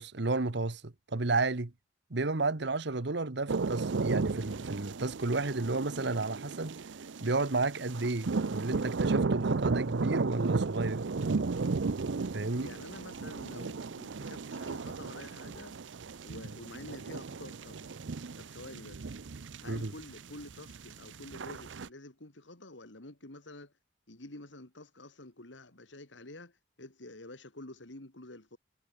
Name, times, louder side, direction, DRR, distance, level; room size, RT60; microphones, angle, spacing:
voice 1, 0.0-1.7 2.1-6.8 7.2-11.0 12.3-12.7 19.7-19.9, right 3 dB, 65° right, 1.2 m, -32 dB
sound 1, 3.5-21.9, right 4 dB, 85° right, 0.6 m, -35 dB
voice 2, 12.6-15.8 16.2-17.8 18.4-19.0 19.6-23.7 24.1-28.6, left 2 dB, 85° left, 2.9 m, -48 dB
head